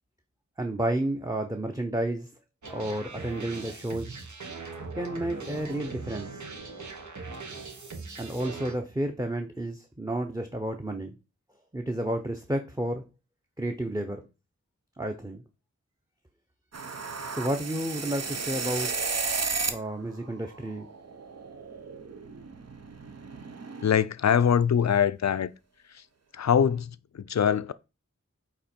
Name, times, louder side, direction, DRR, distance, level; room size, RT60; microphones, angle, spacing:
voice 1, 0.6-2.3 2.7-4.1 4.9-6.4 8.2-11.1 11.7-13.0 13.6-14.2 15.0-15.4 17.3-19.1 19.7-20.9, right 1 dB, 10° right, 0.8 m, -31 dB
sound 1, 2.6-8.8, right 4 dB, 75° right, 1.2 m, -40 dB
sound 2, 16.7-19.9 20.2-24.0, right 4 dB, 60° right, 0.8 m, -34 dB
voice 2, 23.8-25.5 26.3-27.7, left 8 dB, 65° left, 0.5 m, -23 dB
8.6 x 3.0 x 4.4 m
wide cardioid pair, 60°, 29 cm